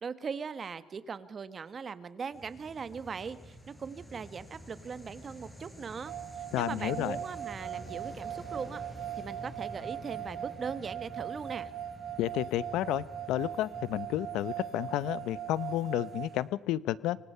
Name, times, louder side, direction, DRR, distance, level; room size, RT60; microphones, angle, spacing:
voice 1, 0.0-8.8 9.2-11.7, right 6 dB, 35° right, 14 dB, 1.3 m, -40 dB
sound 1, 2.3-16.4, equal, 10° left, 5.2 m, -49 dB
sound 2, 6.0-16.3, right 10 dB, 75° right, 6.3 m, -40 dB
voice 2, 6.5-7.2 12.2-17.2, left 14 dB, 90° left, 19 dB, 0.7 m, -31 dB
25.0 x 24.5 x 5.7 m, 1.0 s
cardioid pair, 135°, 0 cm